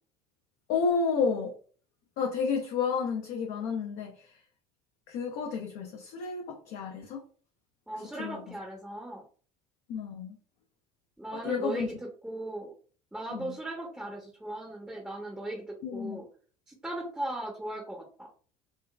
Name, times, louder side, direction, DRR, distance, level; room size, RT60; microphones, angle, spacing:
voice 1, 0.7-1.6 2.2-4.4 5.1-7.3 7.9-8.4 9.9-10.4 11.3-11.9 13.3-13.5 15.8-16.2, left 5 dB, 55° left, 2 dB, 0.5 m, -31 dB
voice 2, 7.9-9.2 11.2-11.9 12.2-12.7 13.1-16.3 16.7-18.3, right 1 dB, 5° right, 0 dB, 0.7 m, -38 dB
3.8 x 2.2 x 2.2 m, 0.41 s
figure-of-eight pair, 60°, 19 cm